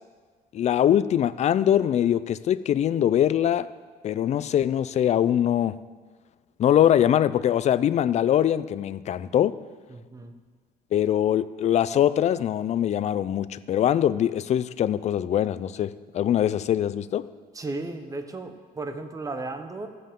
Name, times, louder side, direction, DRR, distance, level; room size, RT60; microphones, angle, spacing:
voice 1, 0.5-3.7 4.0-5.8 6.6-9.6 10.9-17.3, left 10 dB, 40° left, 16 dB, 0.4 m, -22 dB
voice 2, 9.9-10.3 17.5-19.9, right 2 dB, 20° right, 7 dB, 0.9 m, -35 dB
15.0 x 7.7 x 3.7 m, 1.5 s
cardioid pair, 110°, 17 cm